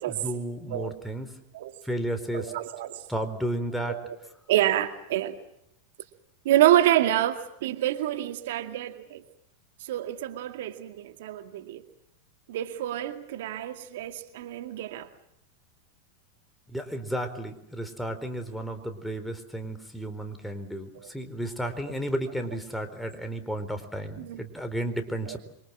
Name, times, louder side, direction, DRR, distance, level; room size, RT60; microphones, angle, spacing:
voice 1, 0.1-1.3 1.8-2.5 3.1-4.0 16.7-25.4, right 1 dB, 5° left, 6 dB, 4.3 m, -33 dB
voice 2, 2.3-3.0 3.9-4.2 4.5-5.4 6.4-9.2 9.8-11.8 12.5-15.1 21.0-21.1 21.9-22.0 24.2-24.4 25.3-25.4, right 13 dB, 65° right, 8 dB, 2.2 m, -27 dB
27.5 x 24.5 x 7.5 m, 0.78 s
hypercardioid pair, 95°, 0 cm